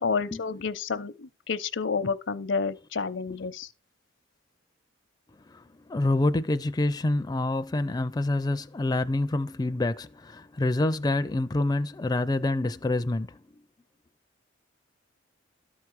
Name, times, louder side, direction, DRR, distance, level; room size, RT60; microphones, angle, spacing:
voice 1, 0.0-3.7, left 5 dB, 80° left, 0.7 m, -30 dB
voice 2, 5.9-13.4, left 2 dB, 20° left, 0.4 m, -27 dB
12.5 x 4.8 x 4.6 m
head